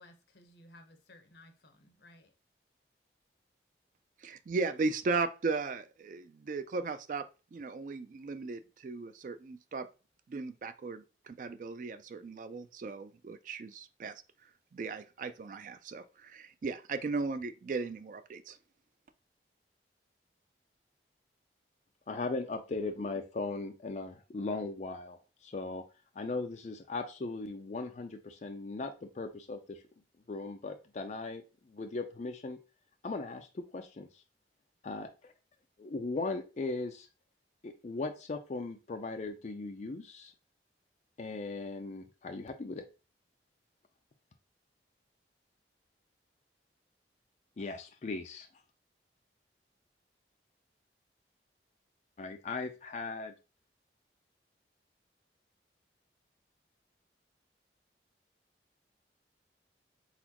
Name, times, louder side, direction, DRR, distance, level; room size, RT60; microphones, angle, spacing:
voice 1, 0.0-2.3, left 1 dB, 75° left, 0.9 m, -58 dB
voice 2, 4.2-9.9 10.3-14.2 14.7-18.6, right 4 dB, 45° right, 0.3 m, -36 dB
voice 3, 22.1-25.8 26.2-29.8 30.3-32.6 33.0-34.2 34.8-35.1 35.8-37.1 37.6-40.3 41.2-42.8 47.6-48.5 52.2-53.3, left 3 dB, 40° left, 0.4 m, -38 dB
4.1 x 3.9 x 2.9 m
head